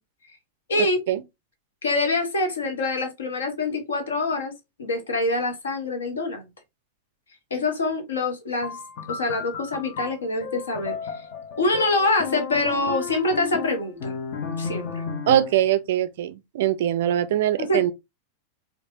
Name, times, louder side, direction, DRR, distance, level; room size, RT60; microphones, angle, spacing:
voice 1, 1.8-4.5 4.8-6.4 7.5-8.8 9.1-11.2 11.6-14.1 14.6-15.0 17.6-17.8, left 2 dB, 70° left, 1.1 m, -25 dB
sound 1, 8.6-15.7, left 6 dB, 45° left, 0.7 m, -33 dB
voice 2, 15.3-17.9, right 12 dB, 55° right, 0.4 m, -22 dB
4.5 x 2.4 x 2.8 m
figure-of-eight pair, 90°, 0 cm